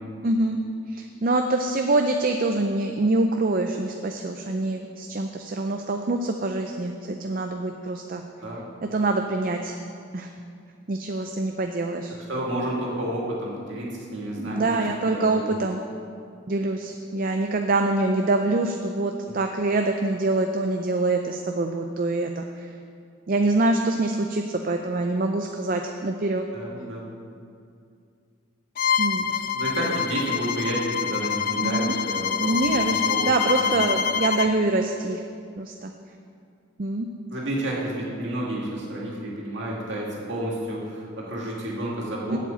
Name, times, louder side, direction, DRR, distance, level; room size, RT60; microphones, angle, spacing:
voice 1, 0.2-0.6 0.9-8.2 8.9-9.7 10.1-10.3 10.9-12.1 14.4-15.8 16.5-22.4 23.3-26.5 29.0-29.3 31.6-31.9 32.4-33.0 33.2-35.2 35.6-35.9 36.8-37.1 42.3-42.4, right 2 dB, 40° right, 4 dB, 0.5 m, -25 dB
voice 2, 12.1-15.5 26.5-27.0 29.3-33.9 37.3-42.4, right 1 dB, 55° right, -4 dB, 2.4 m, -31 dB
Bowed string instrument, 28.8-34.5, left 7 dB, 40° left, 0.3 m, -26 dB
7.9 x 7.5 x 8.3 m, 2.4 s
head